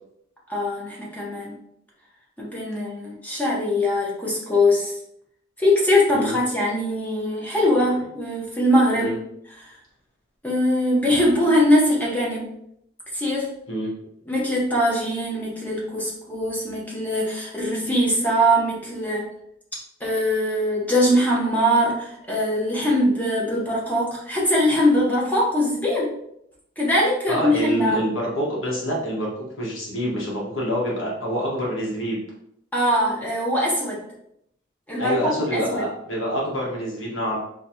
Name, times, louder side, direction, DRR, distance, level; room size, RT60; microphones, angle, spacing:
voice 1, 0.5-1.6 2.4-4.9 5.6-9.1 9.6-9.7 10.4-12.5 13.1-13.5 14.3-19.2 20.0-26.1 26.8-28.0 32.7-34.0 34.9-35.8, equal, 10° left, -5 dB, 1.1 m, -22 dB
voice 2, 27.3-32.2 35.0-37.4, equal, 90° left, -3 dB, 1.4 m, -26 dB
4.1 x 3.0 x 2.9 m, 0.75 s
head